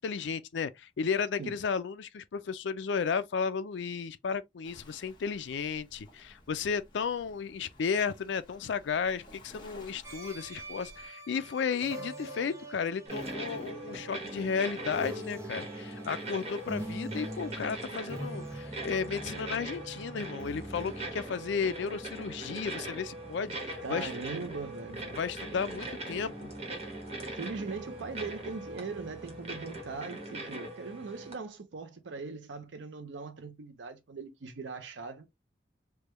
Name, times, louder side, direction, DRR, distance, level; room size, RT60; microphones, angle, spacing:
voice 1, 0.0-24.1 25.1-26.5, left 6 dB, 80° left, 0.4 m, -33 dB
Waves surf, 4.6-11.1, left 1 dB, 25° left, 0.9 m, -55 dB
sound 1, 10.0-29.9, equal, 15° right, 0.6 m, -45 dB
sound 2, 13.0-31.3, right 2 dB, 35° right, 1.1 m, -41 dB
voice 2, 23.8-25.1 27.3-35.3, right 4 dB, 85° right, 0.6 m, -40 dB
3.4 x 2.2 x 3.0 m
head